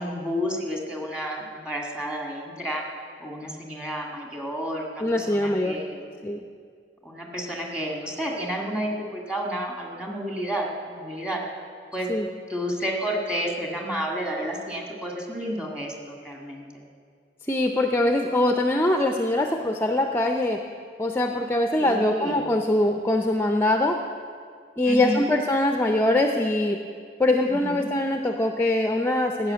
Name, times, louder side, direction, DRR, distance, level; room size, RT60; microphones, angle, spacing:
voice 1, 0.0-2.8 3.2-6.0 7.0-11.4 11.9-12.1 12.5-16.7 21.8-22.5 24.8-25.3 27.4-27.9, equal, 5° right, 0 dB, 1.9 m, -31 dB
voice 2, 5.0-5.8 6.2-6.4 12.1-12.3 17.4-20.6 21.0-24.0 24.8-26.8 27.2-29.5, left 1 dB, 15° left, 5 dB, 0.5 m, -23 dB
15.5 x 6.3 x 8.7 m, 2.2 s
head